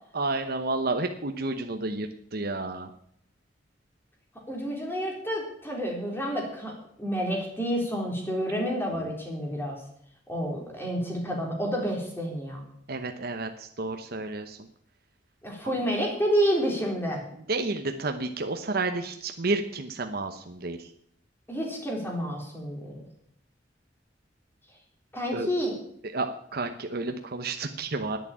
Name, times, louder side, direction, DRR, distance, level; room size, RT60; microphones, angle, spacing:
voice 1, 0.1-2.9 8.9-9.1 12.9-14.6 15.6-15.8 17.5-20.9 25.3-25.5 26.1-28.2, right 3 dB, 55° right, 5 dB, 1.0 m, -31 dB
voice 2, 4.5-9.8 10.3-12.6 15.4-17.2 21.5-22.9 25.1-25.7, equal, 15° left, -1 dB, 3.9 m, -29 dB
10.5 x 8.8 x 8.8 m, 0.69 s
head